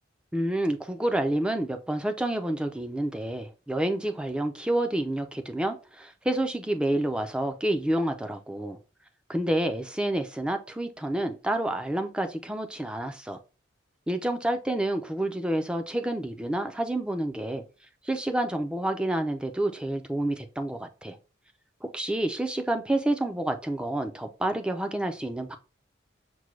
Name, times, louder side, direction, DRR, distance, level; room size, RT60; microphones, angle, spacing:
voice 1, 0.3-8.8 9.3-13.4 14.1-17.6 18.0-21.2 21.8-25.6, right 1 dB, 5° right, 0.4 m, -29 dB
6.0 x 2.2 x 3.1 m
head